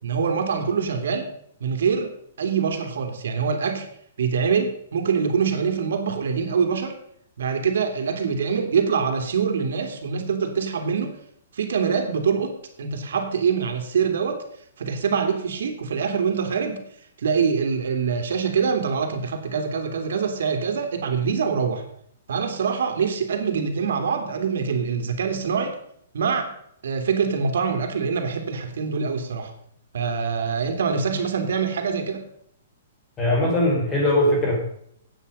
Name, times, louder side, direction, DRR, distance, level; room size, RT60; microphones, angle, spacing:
voice 1, 0.0-1.3 1.6-3.9 4.2-6.9 7.4-11.2 11.5-14.4 14.8-16.8 17.2-21.8 22.3-25.8 26.1-26.5 26.8-29.5 29.9-32.3, right 6 dB, 75° right, 5 dB, 2.8 m, -24 dB
voice 2, 33.2-34.6, left 1 dB, 15° left, -1 dB, 4.4 m, -20 dB
15.0 x 9.0 x 5.5 m, 0.68 s
hypercardioid pair, 160°, 0 cm